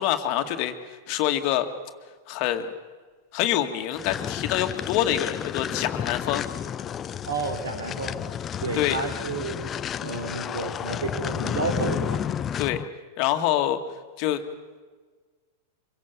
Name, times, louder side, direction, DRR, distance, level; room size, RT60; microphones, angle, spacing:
voice 1, 0.0-1.7 2.3-2.7 3.3-6.4 8.7-9.0 12.6-12.8 13.2-13.8 14.2-14.4, left 12 dB, 50° left, 6 dB, 2.1 m, -26 dB
sound 1, 3.9-12.9, left 9 dB, 30° left, 0.7 m, -31 dB
voice 2, 7.3-8.2 8.6-9.7 10.0-12.2, right 3 dB, 80° right, 5 dB, 3.7 m, -31 dB
25.0 x 23.5 x 7.1 m, 1.4 s
hypercardioid pair, 100°, 0 cm